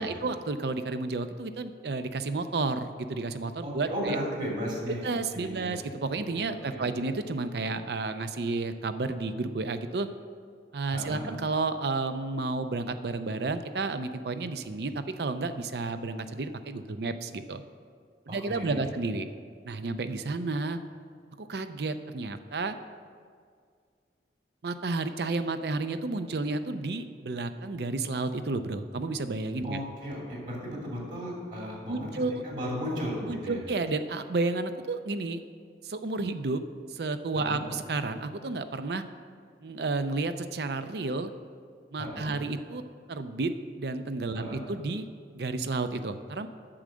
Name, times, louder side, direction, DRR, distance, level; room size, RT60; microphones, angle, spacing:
voice 1, 0.0-4.2 4.9-10.1 10.7-17.6 18.3-19.3 19.6-20.8 21.4-22.8 24.6-29.8 31.9-32.4 33.3-35.4 35.8-36.6 36.9-39.0 39.6-41.3 41.9-42.8 43.1-45.0 45.3-46.5, right 3 dB, 65° right, 10 dB, 0.5 m, -31 dB
voice 2, 3.6-5.8 6.4-6.9 10.9-11.3 18.3-18.8 29.6-32.1 32.4-33.6 37.3-37.7 42.0-42.3 44.3-44.6, equal, 50° right, -3 dB, 2.7 m, -35 dB
8.7 x 6.2 x 7.7 m, 2.1 s
head